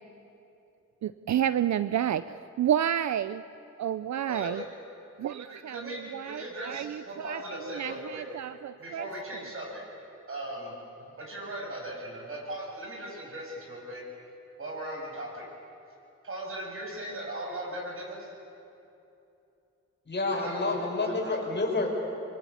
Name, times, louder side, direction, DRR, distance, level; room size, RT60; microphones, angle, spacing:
voice 1, 1.0-3.4 3.8-4.6 5.2-9.1, right 10 dB, 70° right, 14 dB, 0.6 m, -30 dB
voice 2, 4.2-4.6 5.5-8.2 8.8-9.8 10.3-10.7 11.1-14.0 14.6-15.5 16.2-18.3 20.3-21.4, right 1 dB, 45° right, -1 dB, 8.0 m, -38 dB
voice 3, 20.1-21.9, left 3 dB, 35° left, 1 dB, 5.4 m, -29 dB
25.5 x 23.5 x 8.6 m, 2.8 s
cardioid pair, 90°, 29 cm